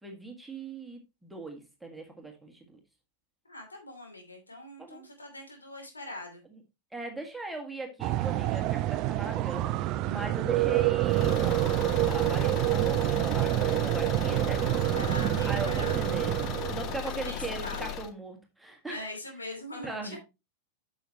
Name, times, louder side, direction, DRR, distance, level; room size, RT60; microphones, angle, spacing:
voice 1, 0.0-2.8 4.8-5.1 6.9-14.9 15.5-16.4 16.7-19.1 19.8-20.2, right 3 dB, 5° right, 2 dB, 1.8 m, -39 dB
voice 2, 3.4-6.4 14.9-16.0 17.0-17.9 18.9-20.2, left 1 dB, 80° left, 3 dB, 2.7 m, -42 dB
sound 1, 8.0-17.0, right 16 dB, 40° right, 0.4 m, -27 dB
Car / Engine, 11.0-18.1, left 9 dB, 40° left, 0.8 m, -37 dB
9.0 x 6.3 x 2.9 m, 0.25 s
figure-of-eight pair, 90°, 0 cm